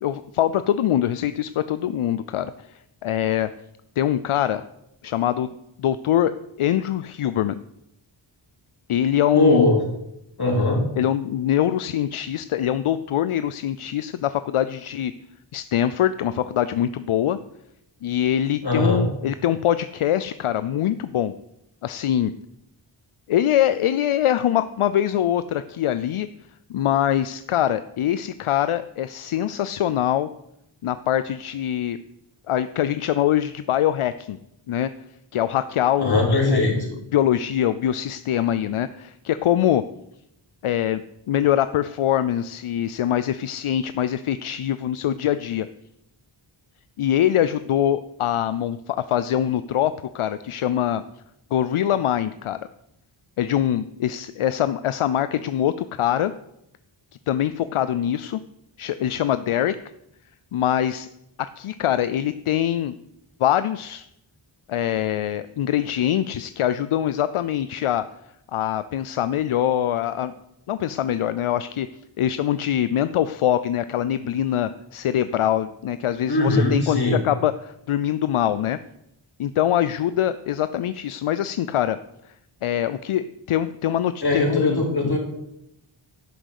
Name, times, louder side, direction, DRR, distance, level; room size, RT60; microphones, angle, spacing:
voice 1, 0.0-3.5 4.0-4.6 5.0-5.5 5.8-7.6 8.9-9.7 11.0-15.1 15.5-17.4 18.0-21.3 21.8-22.3 23.3-26.3 26.7-30.3 30.8-32.0 32.5-34.4 34.7-34.9 35.3-36.6 37.1-39.8 40.6-41.0 41.3-45.7 47.0-51.0 51.5-52.6 53.4-56.3 57.3-58.4 58.8-59.8 60.5-61.1 61.4-62.9 63.4-64.1 64.7-68.1 68.5-70.3 70.7-71.9 72.2-78.8 79.4-82.0 82.3-82.4 82.6-84.8, left 11 dB, 80° left, 13 dB, 0.6 m, -23 dB
voice 2, 9.3-9.8 10.4-10.8 18.6-19.0 36.0-36.7 76.3-77.2 84.2-85.2, left 2 dB, 50° left, -1 dB, 4.2 m, -20 dB
11.5 x 6.2 x 8.3 m, 0.83 s
wide cardioid pair, 75°, 49 cm